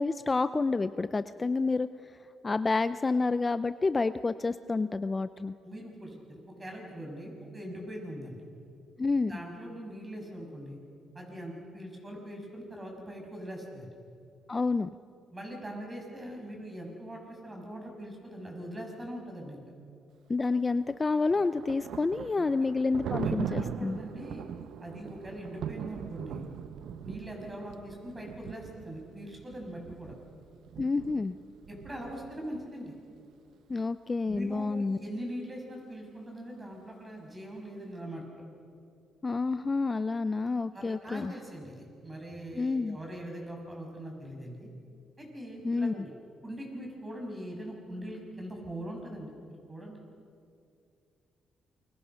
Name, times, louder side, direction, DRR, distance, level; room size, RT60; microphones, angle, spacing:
voice 1, 0.0-1.9 2.4-5.5 9.0-9.3 14.5-14.9 20.3-24.0 30.8-31.3 33.7-35.0 39.2-41.3 42.6-43.0 45.6-46.0, left 3 dB, 25° left, 13 dB, 0.5 m, -29 dB
voice 2, 5.6-8.4 9.3-10.8 11.1-13.9 15.3-19.6 22.3-22.4 23.2-24.5 24.8-26.5 27.0-30.1 31.7-32.9 34.2-38.4 40.7-44.7 45.2-46.1 46.4-49.3 49.7-50.0, equal, 20° right, 1 dB, 6.8 m, -42 dB
Thunder, 20.9-32.7, right 9 dB, 75° right, 0.8 m, -40 dB
28.0 x 24.0 x 5.7 m, 2.5 s
cardioid pair, 90°, 0 cm